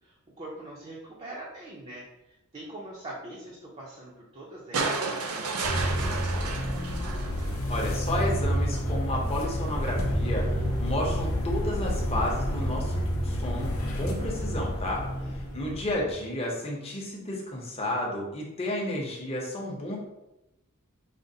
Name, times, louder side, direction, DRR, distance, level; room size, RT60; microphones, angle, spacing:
voice 1, 0.0-6.5 15.1-15.8, right 1 dB, 30° right, -5 dB, 0.5 m, -43 dB
sound 1, 4.7-8.0 9.4-9.5, right 3 dB, 80° right, 0.5 m, -32 dB
sound 2, 5.6-16.2, equal, 65° left, 0.6 m, -29 dB
voice 2, 7.7-15.1 15.5-20.0, left 1 dB, 25° left, -2 dB, 0.7 m, -32 dB
5.0 x 2.1 x 2.6 m, 0.93 s
head